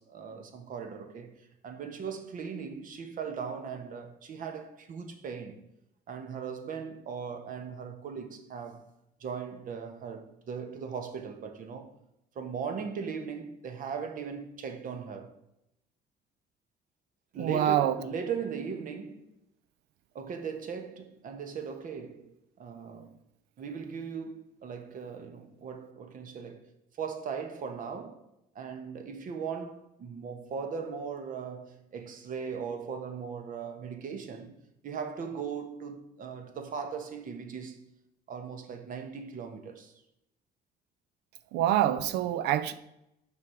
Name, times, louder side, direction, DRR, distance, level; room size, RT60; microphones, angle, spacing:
voice 1, 0.0-5.7 6.1-8.8 9.2-11.9 12.3-15.3 17.3-19.2 20.1-23.2 23.6-26.7 27.0-28.2 28.5-34.6 34.8-37.8 38.3-39.9, right 6 dB, 55° right, 1.0 m, -38 dB
voice 2, 17.4-17.9 41.5-42.7, right 11 dB, 85° right, 0.5 m, -26 dB
5.8 x 4.7 x 4.9 m
cardioid pair, 110°, 17 cm